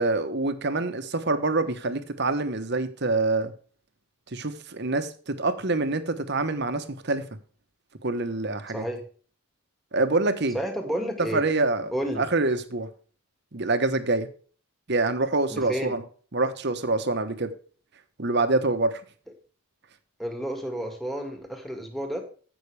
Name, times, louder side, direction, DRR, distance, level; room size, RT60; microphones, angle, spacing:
voice 1, 0.0-3.5 4.3-7.2 8.0-8.8 9.9-10.6 11.2-12.9 13.5-14.3 14.9-16.0 16.3-17.5 18.2-19.0, right 2 dB, 50° right, 1.1 m, -26 dB
voice 2, 8.7-9.0 10.5-11.4 11.9-12.2 15.5-15.9 20.2-22.2, equal, ahead, 1.9 m, -31 dB
15.0 x 6.0 x 3.4 m
head